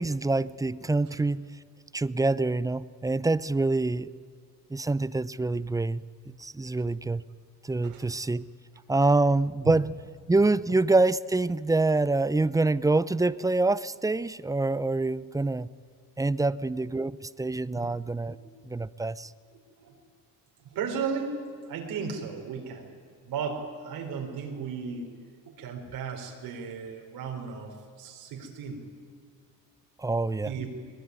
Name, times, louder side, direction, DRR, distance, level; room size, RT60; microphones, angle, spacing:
voice 1, 0.0-1.4 1.9-4.1 4.7-6.0 6.4-7.2 7.6-8.4 8.9-9.8 10.3-15.7 16.2-18.4 18.7-19.3 30.0-30.5, right 2 dB, 10° right, 17 dB, 0.5 m, -26 dB
voice 2, 19.5-19.9 20.6-21.4 21.6-22.9 23.3-25.1 25.6-28.8 30.4-30.7, right 6 dB, 90° right, 1 dB, 4.4 m, -35 dB
22.0 x 20.5 x 9.7 m, 2.2 s
cardioid pair, 115°, 35 cm